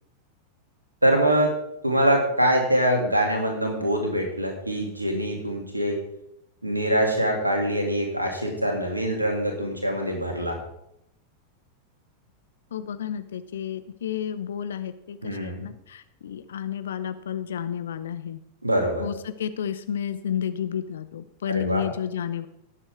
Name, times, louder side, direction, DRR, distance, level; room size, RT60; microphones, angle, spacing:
voice 1, 1.0-1.5 1.8-6.0 6.6-10.6 15.2-15.6 18.6-19.1 21.5-21.8, right 1 dB, 85° right, 2 dB, 2.5 m, -24 dB
voice 2, 12.7-18.4 19.0-22.5, left 9 dB, 65° left, 12 dB, 0.8 m, -31 dB
18.5 x 7.6 x 3.5 m, 0.79 s
figure-of-eight pair, 90°, 0 cm